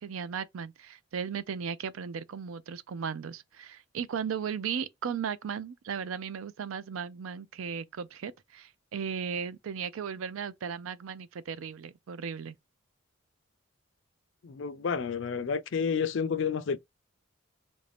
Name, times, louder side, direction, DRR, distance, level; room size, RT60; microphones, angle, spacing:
voice 1, 0.0-12.5, right 7 dB, 80° right, 0.4 m, -36 dB
voice 2, 14.4-16.8, left 6 dB, 65° left, 0.4 m, -30 dB
3.3 x 2.6 x 3.3 m
head